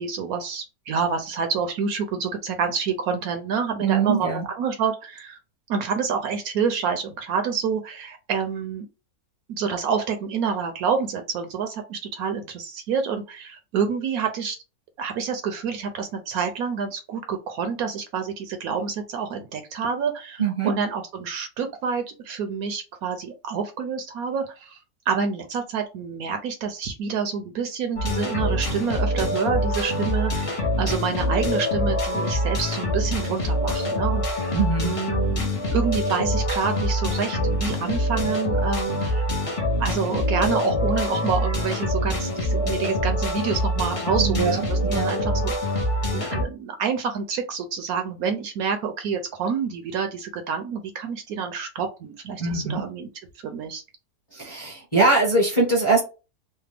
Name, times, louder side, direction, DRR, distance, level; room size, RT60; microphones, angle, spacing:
voice 1, 0.0-4.3 4.5-5.4 5.7-8.9 9.5-14.6 15.0-24.8 25.1-34.6 34.8-39.3 39.8-45.5 46.1-53.1 53.4-53.8, right 6 dB, 70° right, 6 dB, 0.9 m, -28 dB
voice 2, 3.8-4.4 20.4-20.7 34.5-35.0 44.2-45.1 52.4-52.8 54.3-56.0, right 3 dB, 25° left, -4 dB, 0.8 m, -22 dB
sound 1, 28.0-46.4, left 1 dB, 60° left, 0.3 m, -25 dB
3.3 x 2.0 x 3.3 m, 0.31 s
omnidirectional pair, 1.7 m